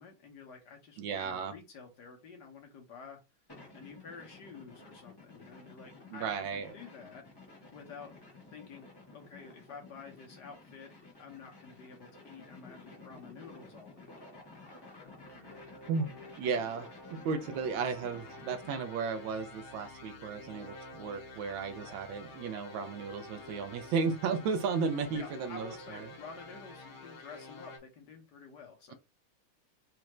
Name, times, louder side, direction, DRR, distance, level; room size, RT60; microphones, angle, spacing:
voice 1, 0.0-3.2 3.7-7.3 7.7-8.1 8.5-10.9 11.2-14.1 21.7-22.0 25.1-28.9, left 5 dB, 60° left, 1.4 m, -50 dB
voice 2, 1.0-1.5 6.1-6.7 15.9-16.1 16.4-26.1, right 5 dB, 75° right, 1.3 m, -34 dB
sound 1, 3.5-18.9, left 3 dB, 35° left, 0.4 m, -53 dB
sound 2, 15.0-27.8, left 2 dB, 75° left, 1.7 m, -49 dB
4.3 x 2.5 x 3.0 m
omnidirectional pair, 2.3 m